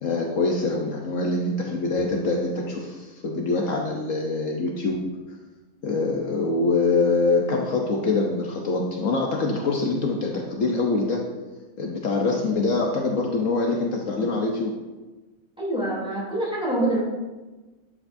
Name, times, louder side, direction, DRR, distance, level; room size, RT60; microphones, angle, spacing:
voice 1, 0.0-5.0 5.8-11.2 11.8-14.7, left 3 dB, 65° left, 0 dB, 1.2 m, -24 dB
voice 2, 15.6-17.0, right 1 dB, 5° right, -5 dB, 2.8 m, -25 dB
12.0 x 7.7 x 2.6 m, 1.2 s
omnidirectional pair, 1.5 m